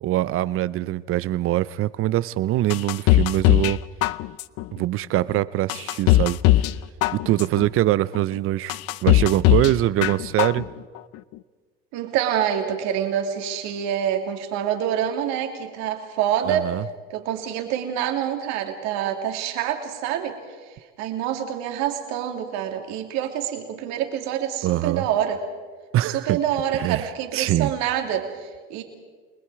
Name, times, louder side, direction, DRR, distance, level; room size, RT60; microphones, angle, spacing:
voice 1, 0.0-3.8 4.7-6.4 7.1-10.7 16.4-16.8 24.6-25.0 25.9-26.4 26.7-27.0 27.3-27.7, right 14 dB, 45° right, 19 dB, 0.7 m, -23 dB
sound 1, 2.7-3.7 4.0-4.6 5.1-5.2 5.7-6.7 7.0-7.6 8.1-8.2 8.7-9.7 10.0-10.6 11.0-11.1, left 15 dB, 55° left, 0.6 m, -19 dB
voice 2, 11.9-16.7 17.1-20.4 21.0-25.4 26.0-28.8, right 10 dB, 65° right, 4 dB, 2.7 m, -26 dB
29.5 x 20.0 x 4.8 m, 1.5 s
hypercardioid pair, 80°, 29 cm